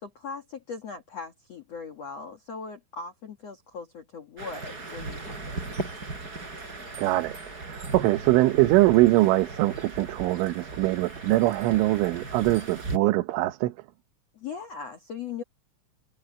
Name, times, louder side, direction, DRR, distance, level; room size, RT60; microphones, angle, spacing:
voice 1, 0.0-5.6 14.3-15.4, left 5 dB, 70° left, 1.5 m, -39 dB
sound 1, 4.4-13.0, right 3 dB, 20° right, 4.3 m, -37 dB
voice 2, 7.0-13.7, right 18 dB, 80° right, 3.4 m, -23 dB
omnidirectional pair, 5.6 m